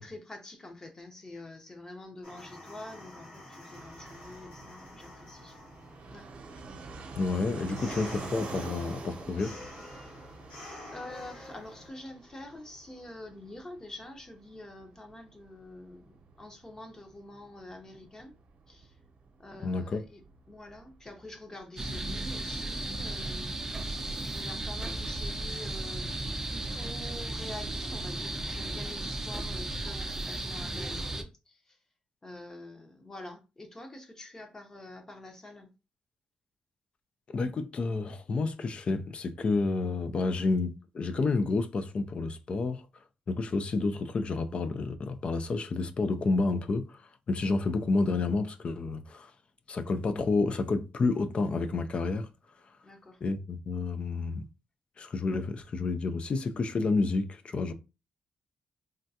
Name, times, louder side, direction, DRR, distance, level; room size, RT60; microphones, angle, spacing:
voice 1, 0.0-5.6 6.1-6.3 10.6-18.4 18.7-19.0 19.4-20.2 20.5-23.6 24.2-26.1 26.4-31.8 32.2-35.7 52.8-53.2, left 1 dB, 25° left, 0.8 m, -46 dB
sound 1, 2.2-11.9, left 1 dB, 80° left, 1.6 m, -48 dB
Fixed-wing aircraft airplane, 3.7-22.1, right 3 dB, 70° right, 0.7 m, -47 dB
voice 2, 7.2-9.6 19.6-20.0 37.3-42.9 43.3-47.0 47.3-49.3 49.7-52.3 53.2-54.5 55.0-57.7, left 3 dB, 45° left, 0.4 m, -30 dB
sound 2, 21.8-31.2, right 2 dB, 20° right, 0.5 m, -35 dB
3.5 x 2.2 x 2.7 m
cardioid pair, 100°, 3 cm